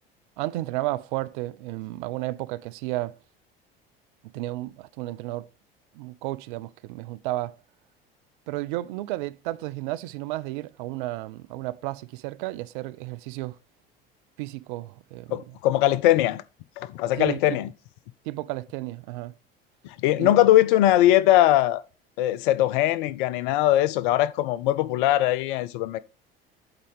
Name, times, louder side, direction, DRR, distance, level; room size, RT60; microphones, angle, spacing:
voice 1, 0.4-3.2 4.3-5.5 6.0-7.6 8.5-13.6 14.4-15.4 17.2-17.6 18.3-19.3 20.2-20.3, right 17 dB, 55° right, 0.5 m, -32 dB
voice 2, 15.3-16.4 16.8-17.7 19.8-21.8 22.2-26.0, left 14 dB, 60° left, 0.6 m, -21 dB
7.9 x 4.1 x 5.1 m
figure-of-eight pair, 65°, 30 cm